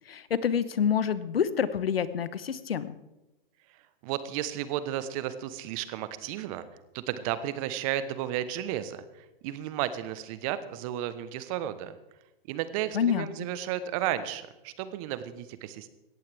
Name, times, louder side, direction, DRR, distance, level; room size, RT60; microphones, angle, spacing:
voice 1, 0.1-3.0 12.9-13.3, left 8 dB, 85° left, 15 dB, 1.0 m, -27 dB
voice 2, 4.0-6.7 6.9-11.9 12.5-15.9, right 11 dB, 35° right, 13 dB, 1.1 m, -33 dB
18.0 x 14.0 x 3.5 m, 1.0 s
hypercardioid pair, 130°, 29 cm